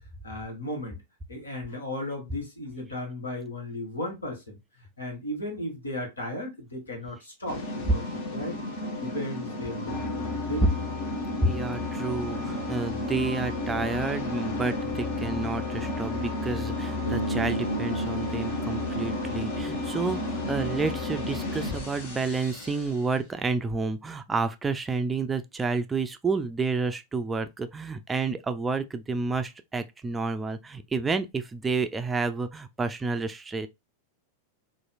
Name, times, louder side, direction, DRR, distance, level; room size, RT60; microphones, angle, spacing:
voice 1, 0.2-1.0 1.3-4.6 5.0-7.6 7.9-8.0 8.3-8.6 9.0-10.6, left 1 dB, 75° left, 1.5 m, -35 dB
sound 1, 7.5-23.1, left 2 dB, 50° left, 1.0 m, -32 dB
voice 2, 11.4-33.7, right 3 dB, 15° right, 0.4 m, -30 dB
Bass guitar, 17.1-21.1, right 2 dB, 90° right, 0.5 m, -35 dB
4.2 x 2.5 x 2.3 m
figure-of-eight pair, 90°, 0 cm